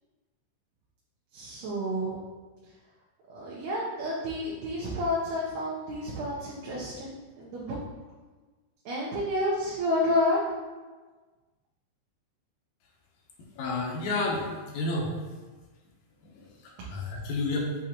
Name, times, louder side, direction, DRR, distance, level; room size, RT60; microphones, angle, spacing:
voice 1, 1.3-2.2 3.3-7.8 8.9-10.4, left 1 dB, 85° right, -6 dB, 2.2 m, -30 dB
voice 2, 13.4-15.3 16.2-17.8, left 2 dB, 80° left, -3 dB, 2.2 m, -31 dB
7.0 x 2.5 x 2.8 m, 1.3 s
omnidirectional pair, 3.4 m